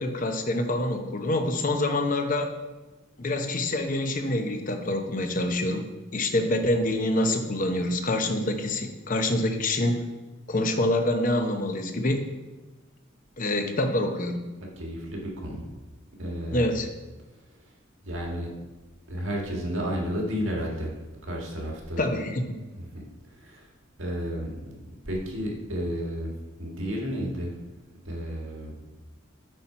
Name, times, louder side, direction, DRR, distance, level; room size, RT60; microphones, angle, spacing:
voice 1, 0.0-2.5 3.2-5.9 6.1-10.0 10.5-12.3 13.4-14.4 16.5-16.9 22.0-22.5, left 1 dB, 40° left, 5 dB, 0.8 m, -26 dB
voice 2, 14.6-15.7 16.2-16.8 18.0-18.5 19.1-20.9 21.2-22.1 22.8-23.1 23.4-23.7 24.0-26.3 26.6-27.5 28.0-28.7, equal, 75° right, -1 dB, 1.7 m, -32 dB
7.9 x 4.5 x 5.5 m, 1.2 s
head